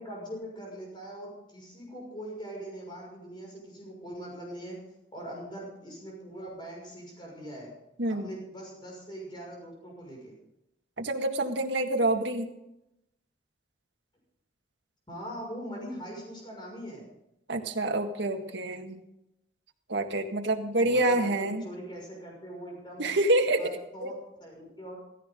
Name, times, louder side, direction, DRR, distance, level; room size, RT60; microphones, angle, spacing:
voice 1, 0.0-4.8 5.1-7.7 8.1-10.3 15.1-17.1 20.8-23.1 23.4-24.9, equal, 25° left, -1 dB, 6.1 m, -42 dB
voice 2, 11.0-12.5 17.5-19.0 19.9-21.7 23.0-24.1, right 1 dB, 80° right, 4 dB, 1.8 m, -27 dB
16.5 x 15.5 x 3.8 m, 0.84 s
head